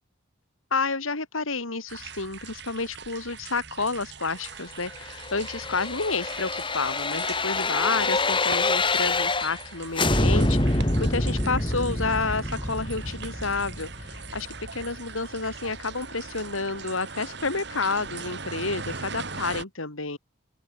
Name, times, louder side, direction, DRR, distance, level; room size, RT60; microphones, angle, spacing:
voice 1, 0.7-20.2, left 3 dB, 90° left, 3.2 m, -30 dB
sound 1, 1.9-19.6, right 5 dB, 55° right, 2.8 m, -41 dB
sound 2, 4.9-9.7 9.9-14.8 15.2-15.3, left 2 dB, 25° left, 3.0 m, -26 dB
open air
head